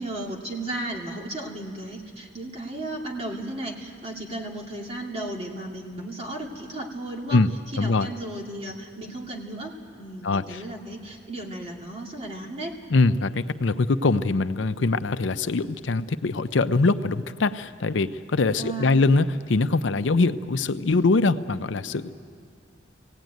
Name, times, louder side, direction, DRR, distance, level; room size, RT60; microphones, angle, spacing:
voice 1, 0.0-7.4 7.7-12.8 18.6-19.0, right 1 dB, 35° right, 0 dB, 2.4 m, -35 dB
voice 2, 7.8-8.1 10.2-10.6 12.9-22.1, left 3 dB, 85° left, 11 dB, 0.6 m, -23 dB
22.5 x 17.0 x 9.2 m, 2.5 s
head